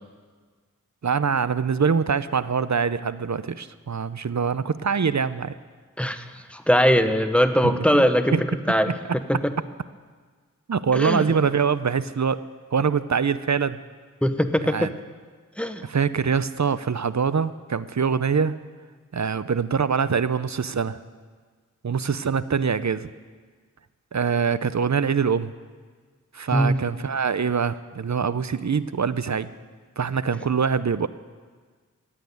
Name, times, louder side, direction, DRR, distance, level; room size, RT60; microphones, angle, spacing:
voice 1, 1.0-5.5 7.6-8.4 8.9-9.4 10.7-12.4 12.7-13.8 14.6-14.9 15.8-18.6 19.1-21.0 21.8-23.1 24.1-25.5 26.3-29.5 30.0-31.1, right 6 dB, 60° right, 15 dB, 0.6 m, -24 dB
voice 2, 6.5-8.4 8.7-9.0 9.3-9.5 10.9-11.4 14.2-14.9 15.6-15.8 26.5-26.8, equal, 5° left, 8 dB, 1.0 m, -21 dB
15.0 x 9.1 x 9.2 m, 1.5 s
wide cardioid pair, 40°, 32 cm